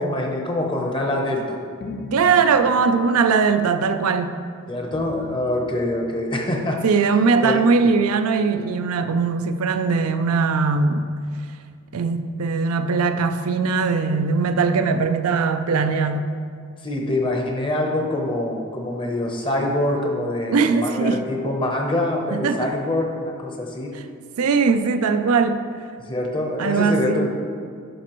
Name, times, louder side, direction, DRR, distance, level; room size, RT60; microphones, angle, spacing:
voice 1, 0.0-1.6 4.7-6.8 7.4-7.9 16.8-23.9 26.1-27.3, left 1 dB, 25° left, 1 dB, 0.8 m, -25 dB
sound 1, 1.8-3.5 4.9-6.2, left 3 dB, 45° left, 0.4 m, -38 dB
voice 2, 2.1-4.3 6.8-11.1 11.9-16.3 20.5-21.2 22.3-22.7 23.9-24.0 24.4-25.6 26.6-27.3, right 5 dB, 85° right, 9 dB, 0.4 m, -20 dB
10.0 x 5.8 x 3.0 m, 2.2 s
head